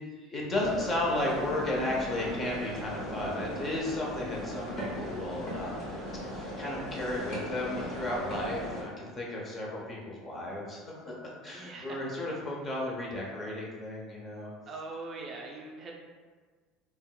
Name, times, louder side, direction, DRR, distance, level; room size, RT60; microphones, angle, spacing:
voice 1, 0.3-5.9 6.3-14.5, left 1 dB, 30° left, -3 dB, 0.8 m, -34 dB
sound 1, 0.5-8.8, equal, 50° left, 1.0 m, -38 dB
voice 2, 11.5-12.0 14.7-15.9, right 3 dB, 40° right, -1 dB, 0.5 m, -41 dB
3.5 x 2.3 x 2.3 m, 1.5 s
supercardioid pair, 95°, 0 cm